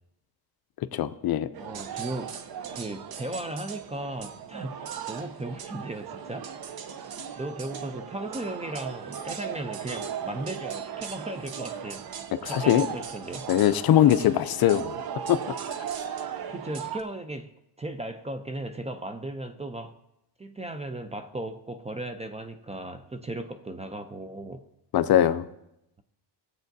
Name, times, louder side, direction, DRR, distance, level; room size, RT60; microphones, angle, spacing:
voice 1, 0.9-1.5 12.4-12.9 13.5-14.9 15.3-15.4 24.9-25.4, left 11 dB, 55° left, 12 dB, 0.5 m, -21 dB
sound 1, 1.5-17.0, right 8 dB, 55° right, 0.8 m, -37 dB
voice 2, 1.6-6.5 7.4-12.1 12.4-13.5 16.5-17.5 17.8-20.0 20.4-24.6, right 1 dB, 15° right, 8 dB, 0.4 m, -36 dB
16.5 x 8.0 x 2.6 m, 0.84 s
cardioid pair, 115°, 45 cm